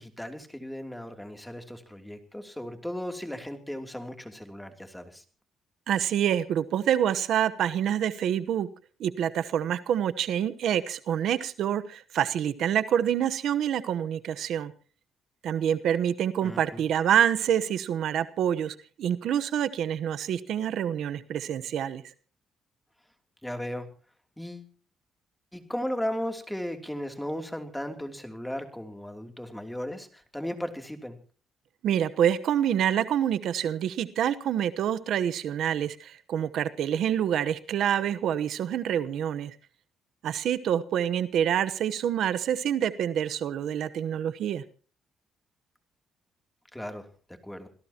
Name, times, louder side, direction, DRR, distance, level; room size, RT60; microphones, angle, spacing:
voice 1, 0.0-5.2 16.4-16.8 23.4-23.9 24.4-24.7 25.5-31.2 46.7-47.1 47.4-47.7, equal, 5° left, 5 dB, 2.9 m, -36 dB
voice 2, 5.9-8.7 9.0-14.7 15.4-22.0 31.8-39.6 40.2-44.6, right 9 dB, 75° right, 13 dB, 1.0 m, -27 dB
27.0 x 17.5 x 2.9 m, 0.40 s
cardioid pair, 90°, 0 cm